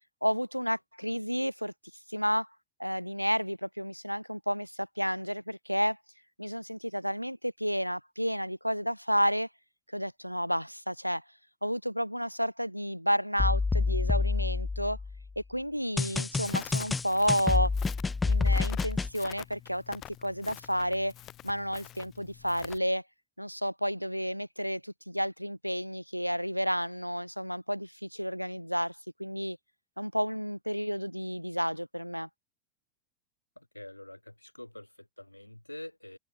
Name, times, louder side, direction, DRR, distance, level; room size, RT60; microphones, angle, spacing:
voice 1, 0.2-1.7 2.1-2.5 2.8-6.0 6.4-9.5 9.9-11.2 11.6-15.0 15.4-17.7 18.2-21.1 21.4-23.0 23.4-29.6 30.0-32.3, equal, 90° right, 2.7 m, -31 dB
sound 1, 13.4-15.2 16.0-19.1, left 4 dB, 10° left, 0.9 m, -28 dB
Crackle, 16.4-22.8, left 13 dB, 30° left, 1.8 m, -48 dB
voice 2, 33.6-36.2, left 1 dB, 85° left, 4.3 m, -46 dB
open air
figure-of-eight pair, 90°, 0 cm